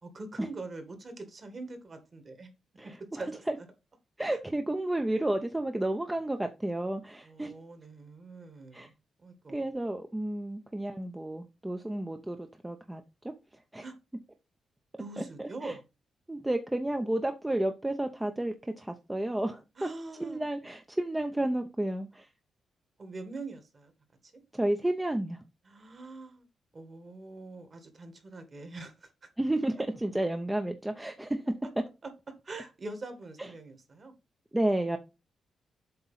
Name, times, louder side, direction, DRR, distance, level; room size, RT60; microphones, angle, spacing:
voice 1, 0.0-2.5 2.8-3.4 4.3-4.4 7.2-8.9 9.2-9.7 13.8-14.0 15.0-15.8 19.8-20.4 23.0-23.9 24.2-24.3 25.6-26.4 26.7-29.3 32.4-34.1, right 3 dB, 35° right, 7 dB, 1.7 m, -44 dB
voice 2, 2.8-3.6 4.2-7.5 8.7-8.9 9.5-13.0 13.7-13.8 15.2-15.7 16.3-19.9 20.2-22.3 24.5-25.4 29.4-31.4 33.4-33.5 34.5-35.0, right 1 dB, 10° right, 5 dB, 0.6 m, -31 dB
7.8 x 3.0 x 5.5 m, 0.26 s
cardioid pair, 130°, 0 cm